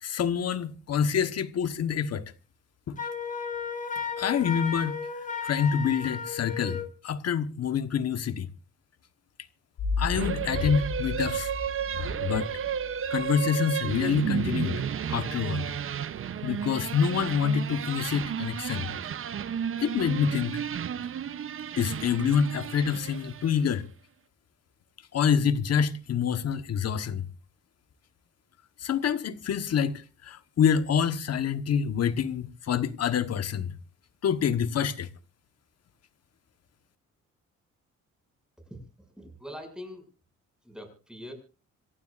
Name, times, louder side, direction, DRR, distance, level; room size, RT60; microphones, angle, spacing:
voice 1, 0.0-2.3 2.9-3.0 4.2-5.0 5.4-8.5 10.0-11.5 12.2-12.5 13.1-14.8 15.1-15.7 16.4-18.9 19.8-20.6 21.8-23.9 25.1-27.2 28.8-33.7 34.2-35.1, left 7 dB, 55° left, 1.3 m, -27 dB
Wind instrument woodwind instrument, 3.0-6.9, left 6 dB, 25° left, 2.4 m, -34 dB
sound 1, 9.8-13.3, left 4 dB, 75° left, 7.2 m, -33 dB
sound 2, 10.1-23.7, right 8 dB, 45° right, 0.8 m, -33 dB
voice 2, 38.6-40.0 40.6-41.3, equal, ahead, 6.8 m, -43 dB
27.0 x 15.0 x 2.6 m
cardioid pair, 90°, 30 cm